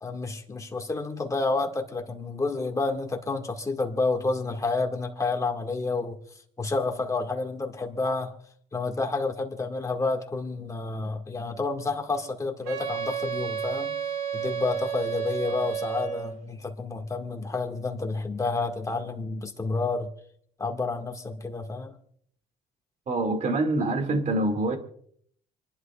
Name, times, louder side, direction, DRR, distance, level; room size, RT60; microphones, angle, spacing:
voice 1, 0.0-6.2 6.6-8.3 8.7-14.0 14.3-20.1 20.6-22.0, left 3 dB, 20° left, 1.9 m, -29 dB
Wind instrument woodwind instrument, 12.6-16.4, right 8 dB, 75° right, 2.7 m, -31 dB
voice 2, 23.1-24.8, right 2 dB, 45° right, 2.2 m, -25 dB
28.0 x 11.0 x 2.4 m
cardioid pair, 110°, 17 cm